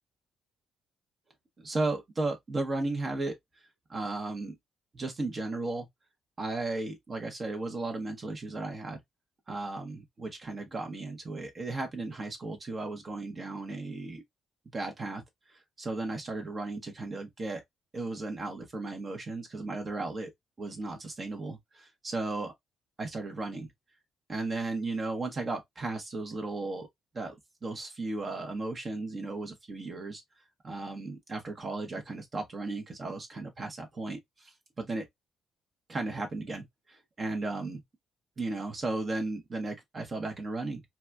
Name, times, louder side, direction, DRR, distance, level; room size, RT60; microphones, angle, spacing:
voice 1, 1.6-3.4 3.9-4.5 4.9-5.9 6.4-9.0 9.5-14.2 14.7-15.2 15.5-17.6 17.9-20.3 20.6-22.5 23.0-23.7 24.3-26.9 27.1-27.3 27.6-30.2 30.6-35.0 35.9-37.8 38.4-40.8, right 2 dB, 35° right, 0.9 m, -35 dB
4.0 x 2.3 x 2.3 m
cardioid pair, 90°, 0 cm